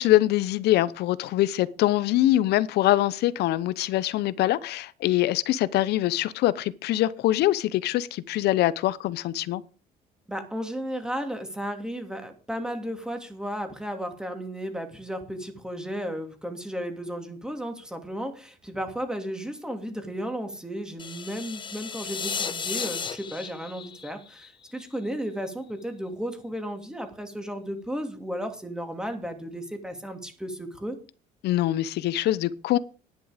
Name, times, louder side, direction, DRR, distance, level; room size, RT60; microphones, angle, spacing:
voice 1, 0.0-9.6 31.4-32.8, left 14 dB, 75° left, 0.9 m, -24 dB
voice 2, 10.3-31.0, equal, 5° right, 2.7 m, -34 dB
sound 1, 21.0-25.1, left 6 dB, 30° left, 1.1 m, -34 dB
11.0 x 10.5 x 5.1 m
cardioid pair, 110°, 17 cm